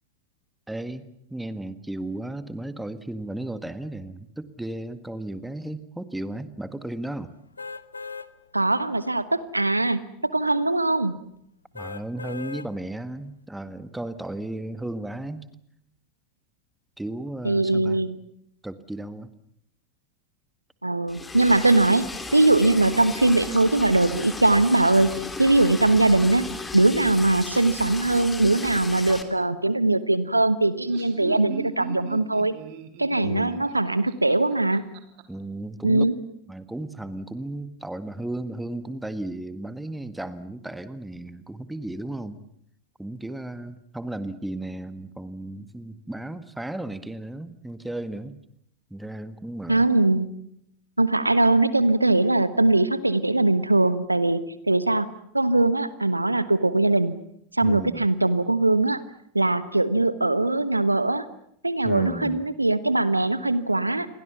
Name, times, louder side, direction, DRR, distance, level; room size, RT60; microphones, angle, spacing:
voice 1, 0.7-7.3 11.7-15.5 17.0-18.1 18.6-19.3 33.2-33.6 35.3-36.1 36.5-42.4 43.0-48.4 48.9-49.9 57.6-58.1 61.8-62.5, right 1 dB, 5° right, 13 dB, 1.7 m, -34 dB
sound 1, 7.6-8.3 8.8-8.9 11.7-12.7 13.2-13.3, left 5 dB, 80° left, 1.1 m, -37 dB
voice 2, 8.5-11.2 17.4-18.2 20.8-22.1 22.3-25.1 25.4-26.4 26.7-32.5 33.0-34.8 35.8-36.1 49.7-50.3 51.0-54.4 54.7-55.1 55.3-57.1 57.6-59.0 59.3-61.3 61.6-64.1, right 2 dB, 85° right, 15 dB, 1.2 m, -21 dB
Liquid, 21.1-29.2, left 3 dB, 10° left, 3.2 m, -36 dB
Laughter, 30.6-35.2, right 8 dB, 50° right, 3.6 m, -39 dB
29.0 x 23.0 x 7.1 m, 0.74 s
figure-of-eight pair, 85°, 0 cm